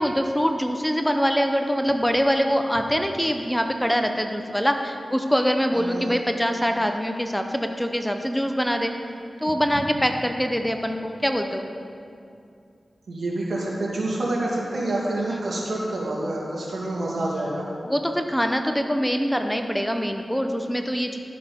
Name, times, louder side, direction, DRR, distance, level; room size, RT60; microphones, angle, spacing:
voice 1, 0.0-8.9 9.4-11.7 17.9-21.2, equal, 5° left, 5 dB, 0.7 m, -24 dB
voice 2, 5.7-6.1 13.1-17.7, right 1 dB, 75° right, -4 dB, 2.3 m, -27 dB
13.0 x 6.7 x 5.2 m, 2.4 s
cardioid pair, 55°, 0 cm